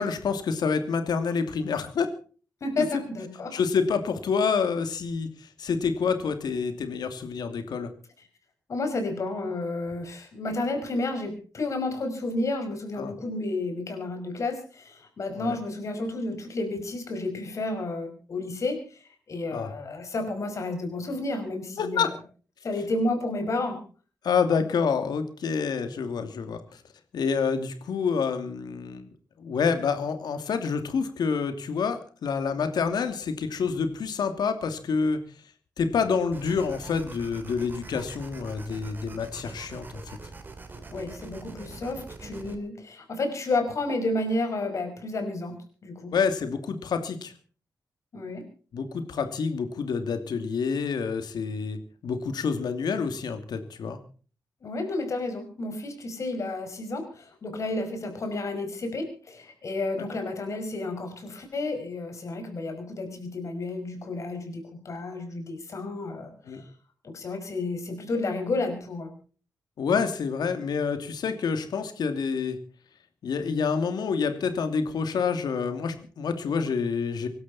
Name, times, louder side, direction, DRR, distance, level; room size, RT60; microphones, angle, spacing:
voice 1, 0.0-2.1 2.8-2.9 3.5-7.9 13.0-13.1 15.3-15.6 19.5-19.7 21.8-22.1 24.2-26.6 27.1-29.1 29.4-35.2 35.8-40.0 46.1-47.3 48.7-54.0 66.5-66.6 69.8-72.6 73.2-77.3, left 5 dB, 90° left, 8 dB, 2.7 m, -27 dB
voice 2, 2.6-3.6 8.7-22.1 22.6-23.8 40.9-45.5 45.8-46.1 48.1-48.4 54.6-66.7 67.0-69.1, left 2 dB, 50° left, 6 dB, 5.6 m, -31 dB
sound 1, 36.3-42.6, right 3 dB, 30° right, 2.7 m, -43 dB
25.0 x 12.5 x 4.3 m, 0.39 s
wide cardioid pair, 170°, 7 cm